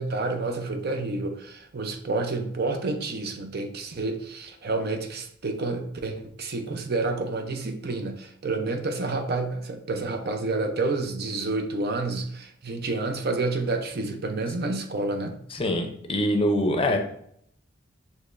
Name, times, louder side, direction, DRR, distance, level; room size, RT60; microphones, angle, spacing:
voice 1, 0.0-15.4, right 3 dB, 55° right, 5 dB, 0.6 m, -29 dB
voice 2, 15.5-17.0, left 1 dB, 30° left, 5 dB, 0.6 m, -24 dB
6.4 x 3.0 x 2.5 m, 0.70 s
head